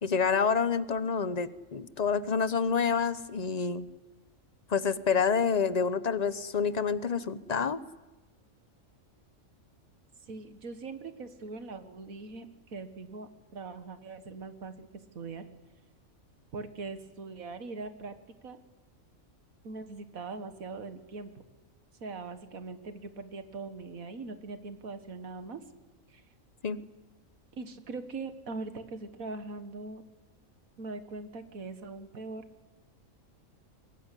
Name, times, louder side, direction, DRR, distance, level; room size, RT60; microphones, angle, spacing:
voice 1, 0.0-3.9 4.7-7.8 26.6-26.8, left 6 dB, 35° left, 14 dB, 0.9 m, -28 dB
voice 2, 10.3-15.5 16.5-18.2 18.4-18.6 19.6-21.3 22.0-25.6 26.1-26.2 27.5-30.0 30.8-32.4, right 3 dB, 85° right, 9 dB, 2.0 m, -41 dB
24.5 x 20.5 x 9.9 m, 1.2 s
omnidirectional pair, 1.4 m